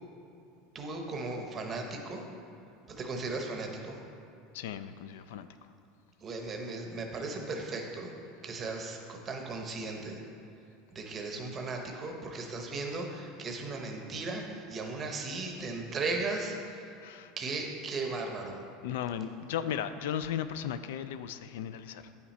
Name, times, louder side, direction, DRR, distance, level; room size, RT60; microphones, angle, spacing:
voice 1, 0.7-2.2 2.9-4.0 6.2-8.1 8.4-10.2 10.9-16.9 17.4-18.7, right 3 dB, 20° right, 2 dB, 0.7 m, -36 dB
voice 2, 4.5-5.7 17.0-17.3 18.8-22.1, left 9 dB, 80° left, 12 dB, 0.3 m, -36 dB
9.0 x 5.8 x 4.2 m, 2.6 s
supercardioid pair, 180°, 0 cm